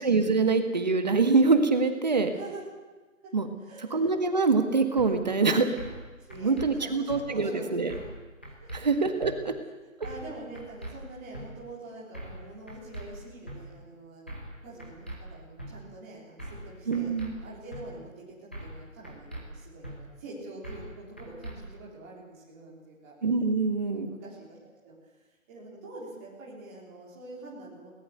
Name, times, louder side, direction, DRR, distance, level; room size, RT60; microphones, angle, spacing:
voice 1, 0.0-2.3 3.3-3.5 3.9-5.7 6.4-7.9 8.7-9.5 16.9-17.3 23.2-24.1, right 4 dB, 30° right, 7 dB, 1.7 m, -24 dB
voice 2, 2.3-2.6 3.2-4.1 6.2-8.0 8.5-8.7 10.0-23.1 23.9-24.6 24.8-25.0 25.5-27.9, right 2 dB, 10° right, -5 dB, 3.6 m, -45 dB
sound 1, 5.0-5.1 5.8-6.0 6.3-6.7 7.1-7.2 7.9-8.2 8.4-8.8 9.2-9.3 10.0-10.3 10.5-10.9 11.3-11.5 12.1-12.4 12.7-13.1 13.5-13.6 14.3-14.5 14.8-15.2 15.6-15.7 16.4-16.7 16.9-17.3 17.7-17.8 18.5-18.8 19.0-19.4 19.8-20.0 20.6-20.9 21.2-21.6, right 1 dB, 10° left, 1.0 m, -40 dB
20.5 x 19.0 x 8.1 m, 1.3 s
hypercardioid pair, 175°, 40 cm